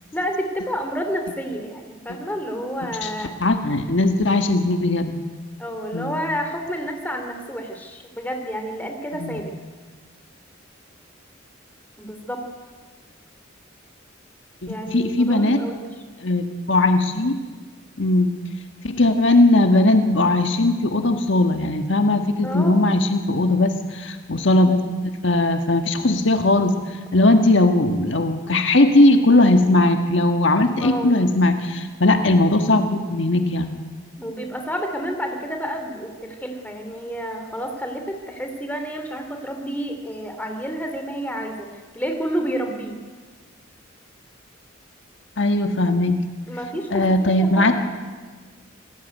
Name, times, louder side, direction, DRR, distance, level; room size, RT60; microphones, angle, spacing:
voice 1, 0.1-3.3 5.6-9.5 12.0-12.4 14.7-15.8 22.4-22.8 30.8-31.3 34.2-43.0 46.5-47.7, equal, 10° left, 4 dB, 2.9 m, -29 dB
voice 2, 3.4-5.1 5.9-6.2 9.2-9.4 14.6-15.6 16.2-17.3 18.0-18.4 18.8-24.9 25.2-26.8 27.1-33.8 45.4-46.2 46.9-47.7, left 2 dB, 65° left, 6 dB, 1.6 m, -18 dB
27.0 x 18.5 x 9.4 m, 1.5 s
head